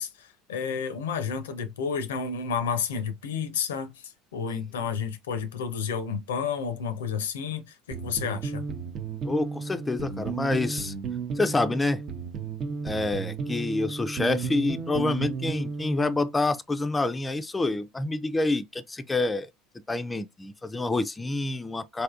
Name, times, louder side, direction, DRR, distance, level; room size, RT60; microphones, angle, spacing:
voice 1, 0.0-8.6, left 6 dB, 80° left, 0.5 m, -31 dB
sound 1, 7.9-16.3, right 5 dB, 45° right, 0.6 m, -33 dB
voice 2, 9.2-10.9 11.4-12.0 12.8-19.5 19.9-22.0, left 2 dB, 15° left, 0.4 m, -27 dB
3.4 x 2.6 x 2.4 m
hypercardioid pair, 75°, 0 cm